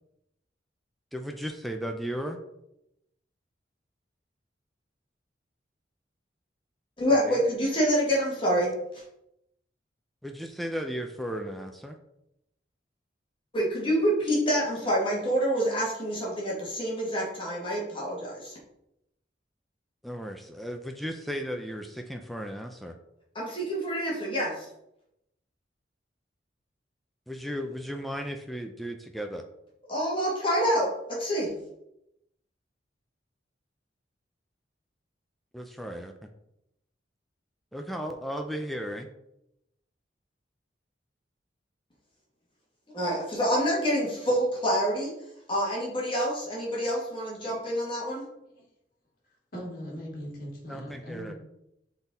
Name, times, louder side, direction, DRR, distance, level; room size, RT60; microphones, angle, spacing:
voice 1, 1.1-2.4 7.1-7.4 10.2-12.0 20.0-23.0 27.3-29.4 35.5-36.1 37.7-39.1 50.7-51.3, equal, ahead, 4 dB, 0.4 m, -35 dB
voice 2, 7.0-8.7 13.5-18.6 23.4-24.7 29.9-31.5 42.9-45.1 45.5-48.3, equal, 30° left, -4 dB, 1.7 m, -27 dB
voice 3, 49.5-51.3, equal, 55° left, -3 dB, 2.0 m, -39 dB
6.1 x 3.8 x 4.0 m, 0.82 s
head